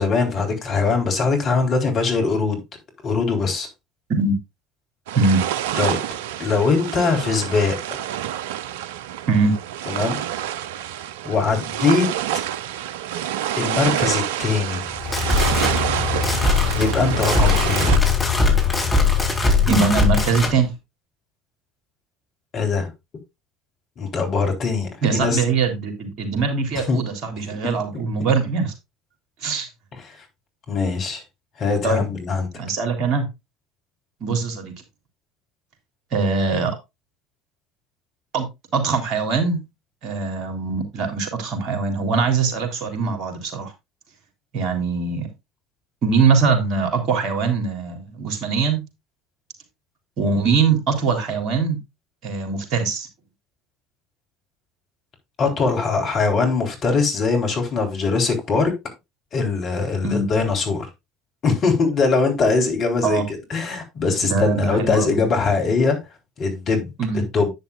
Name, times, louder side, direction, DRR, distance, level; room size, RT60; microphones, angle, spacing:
voice 1, 0.0-2.6 3.0-3.7 5.8-6.0 6.4-8.0 9.9-10.2 11.2-12.1 13.6-14.9 16.7-18.1 22.5-22.9 24.0-25.4 26.7-27.0 27.6-27.8 30.0-30.2 30.7-31.2 31.6-32.5 55.4-58.7 59.3-60.9 61.4-66.0 66.4-66.9 67.3-67.5, left 4 dB, 45° left, 4.0 m, -21 dB
sound 1, 5.1-18.0, right 11 dB, 70° right, 0.5 m, -27 dB
sound 2, 14.9-20.6, left 4 dB, 20° left, 4.2 m, -20 dB
voice 2, 19.7-20.7 25.0-28.7 29.4-29.7 31.8-32.1 32.6-33.3 34.2-34.7 36.1-36.7 38.3-38.5 38.7-39.6 40.0-43.7 44.5-45.3 46.0-48.8 50.2-51.8 52.2-53.1 60.0-60.3 63.0-63.2 64.2-65.3 67.0-67.2, right 4 dB, 55° right, 3.4 m, -22 dB
10.5 x 9.7 x 2.5 m
figure-of-eight pair, 65°, 0 cm